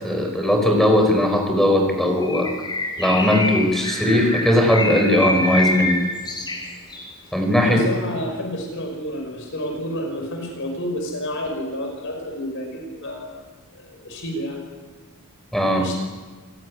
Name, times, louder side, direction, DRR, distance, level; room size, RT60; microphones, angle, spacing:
voice 1, 0.0-2.5 3.0-6.0 7.3-7.8 15.5-15.9, left 1 dB, ahead, 3 dB, 4.8 m, -18 dB
Bird, 2.2-7.1, left 2 dB, 20° left, 6.0 m, -26 dB
voice 2, 7.6-13.4 13.7-14.6 15.8-16.0, equal, 60° left, 3 dB, 5.6 m, -30 dB
27.5 x 17.0 x 9.9 m, 1.4 s
head